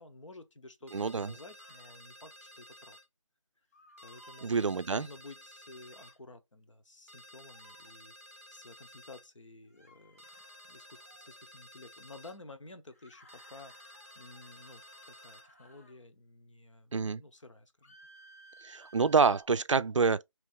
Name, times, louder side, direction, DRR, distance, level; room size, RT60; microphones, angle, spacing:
voice 1, 0.0-3.0 4.0-4.5 4.9-10.2 10.6-18.0, left 2 dB, 65° left, 0.9 m, -52 dB
sound 1, 0.9-3.1 4.0-6.2 7.1-9.3 10.2-12.4 13.3-15.5, equal, 25° right, 0.6 m, -54 dB
voice 2, 0.9-1.3 4.4-5.1 16.9-17.2 18.6-20.2, right 5 dB, 65° right, 0.4 m, -27 dB
sound 2, 1.6-2.0 3.7-4.5 5.9-6.2 7.5-7.9 9.7-11.6 12.9-16.0 17.8-19.4, right 1 dB, 30° left, 0.7 m, -59 dB
3.4 x 3.0 x 3.7 m
figure-of-eight pair, 165°, 17 cm